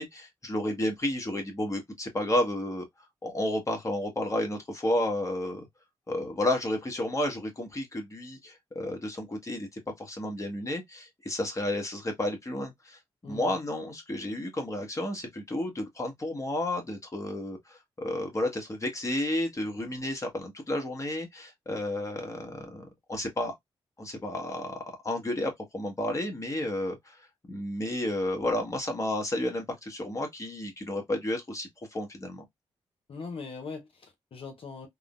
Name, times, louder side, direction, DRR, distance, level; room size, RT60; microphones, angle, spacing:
voice 1, 0.0-2.8 3.2-5.7 6.1-13.0 13.3-23.5 24.0-27.2 27.5-32.4, left 1 dB, 30° left, 1.3 m, -32 dB
voice 2, 13.2-13.6 33.1-34.9, left 4 dB, 60° left, 0.8 m, -41 dB
3.6 x 2.1 x 2.4 m
supercardioid pair, 55°, 10 cm